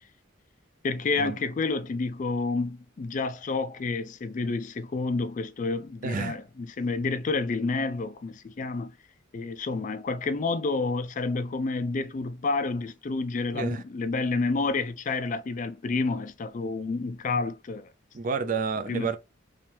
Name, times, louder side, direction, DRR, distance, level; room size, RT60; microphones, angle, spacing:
voice 1, 0.8-8.9 9.3-17.9 18.9-19.1, left 3 dB, 40° left, 0.4 m, -29 dB
voice 2, 6.0-6.4 13.5-13.8 18.1-19.2, right 5 dB, 45° right, 0.4 m, -30 dB
3.1 x 3.0 x 3.3 m
head